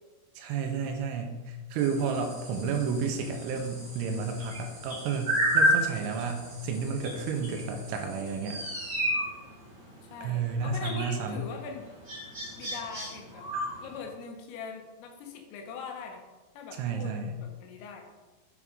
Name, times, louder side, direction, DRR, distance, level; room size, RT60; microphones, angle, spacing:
voice 1, 0.4-8.6 10.2-11.4 16.8-17.3, right 5 dB, 85° right, 4 dB, 3.1 m, -31 dB
sound 1, 1.8-14.0, equal, 55° right, 0.8 m, -33 dB
voice 2, 10.1-11.9 12.5-13.4 13.8-16.2 16.6-17.1 17.4-18.0, left 5 dB, 85° left, 3 dB, 3.7 m, -41 dB
8.2 x 6.3 x 3.7 m, 1.2 s
omnidirectional pair, 5.7 m